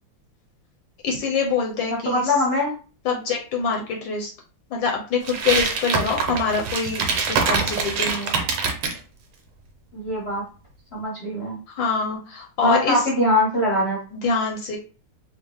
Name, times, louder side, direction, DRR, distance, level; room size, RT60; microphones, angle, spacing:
voice 1, 1.0-2.3 3.0-4.3 4.7-8.4 11.7-13.0 14.1-14.8, left 5 dB, 70° left, 1 dB, 1.2 m, -25 dB
voice 2, 2.0-2.7 9.9-10.5 10.9-11.6 12.6-14.0, left 1 dB, 45° left, -4 dB, 0.8 m, -22 dB
sound 1, 5.3-9.0, right 5 dB, 80° right, 1.6 m, -24 dB
4.4 x 2.0 x 3.4 m, 0.36 s
omnidirectional pair, 2.4 m